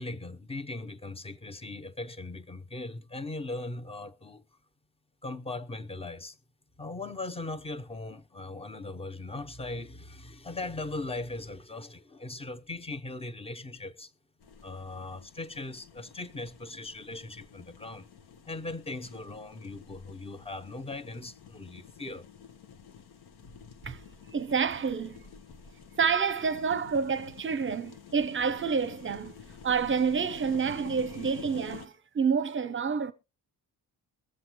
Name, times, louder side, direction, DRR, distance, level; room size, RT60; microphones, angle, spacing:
voice 1, 0.0-4.4 5.2-6.4 6.8-14.1 14.6-18.1 18.4-22.3, left 2 dB, 15° left, 0.8 m, -39 dB
sound 1, 14.4-31.9, left 7 dB, 70° left, 1.3 m, -49 dB
voice 2, 24.3-25.3 26.0-29.4 29.6-33.1, right 6 dB, 30° right, 0.7 m, -28 dB
22.5 x 7.7 x 3.0 m
cardioid pair, 135°, 39 cm